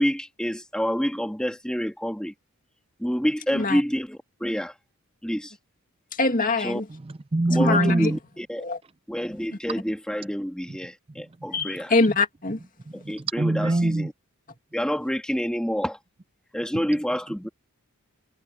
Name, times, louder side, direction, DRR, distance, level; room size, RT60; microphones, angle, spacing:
voice 1, 0.0-2.3 3.0-4.7 5.2-5.5 6.6-6.8 7.5-8.6 9.1-11.9 12.9-14.1 14.7-16.0 16.5-17.5, equal, 5° left, 1.8 m, -28 dB
voice 2, 6.2-6.9 7.6-8.1 8.6-8.8 9.5-9.6 11.5-12.6, left 3 dB, 35° left, 2.3 m, -23 dB
voice 3, 6.9-8.2 10.7-10.8 11.4-11.7 12.9-14.1 16.7-16.8, right 2 dB, 25° right, 0.5 m, -25 dB
head